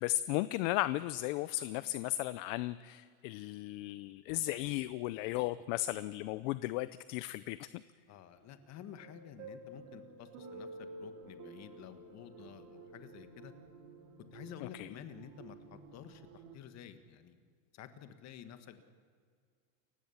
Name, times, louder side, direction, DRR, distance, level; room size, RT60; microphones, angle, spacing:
voice 1, 0.0-7.8 14.7-14.9, left 16 dB, 60° left, 15 dB, 0.7 m, -35 dB
voice 2, 8.1-10.7 11.0-13.5 14.3-17.3 17.7-18.8, left 9 dB, 35° left, 9 dB, 1.6 m, -51 dB
sound 1, 8.7-16.6, right 2 dB, 50° right, 3.0 m, -51 dB
29.0 x 16.0 x 7.2 m, 2.1 s
supercardioid pair, 150°, 45 cm